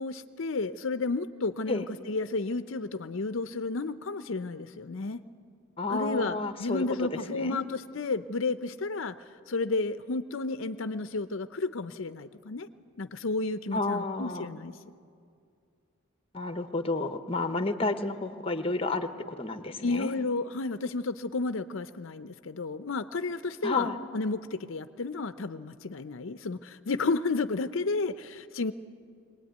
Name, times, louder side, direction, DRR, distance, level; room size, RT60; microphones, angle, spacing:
voice 1, 0.0-5.2 5.9-9.2 9.5-12.7 13.0-14.7 19.8-23.9 24.1-28.7, left 3 dB, 70° left, 11 dB, 0.6 m, -32 dB
voice 2, 5.8-6.8 7.3-7.6 13.7-14.5 16.3-20.1 23.6-24.0, left 2 dB, 25° left, 9 dB, 1.0 m, -31 dB
23.0 x 19.5 x 9.3 m, 2.3 s
head